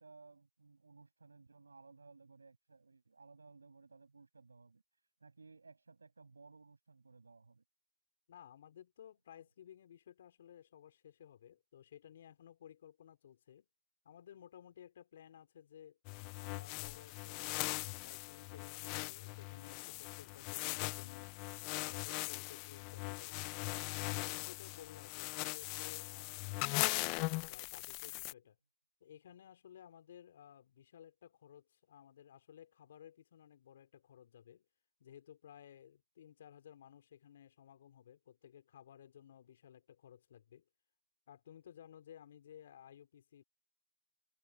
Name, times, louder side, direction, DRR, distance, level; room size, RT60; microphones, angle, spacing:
voice 1, 0.0-4.8 5.2-7.6, right 4 dB, 85° right, 7.9 m, -59 dB
voice 2, 8.3-13.7 14.0-16.0 16.4-21.3 21.8-23.5 24.0-28.6 29.0-34.6 35.0-40.6 41.3-43.4, left 10 dB, 45° left, 4.4 m, -57 dB
sound 1, 16.1-28.3, left 28 dB, 25° left, 0.7 m, -40 dB
hypercardioid pair, 150°, 0 cm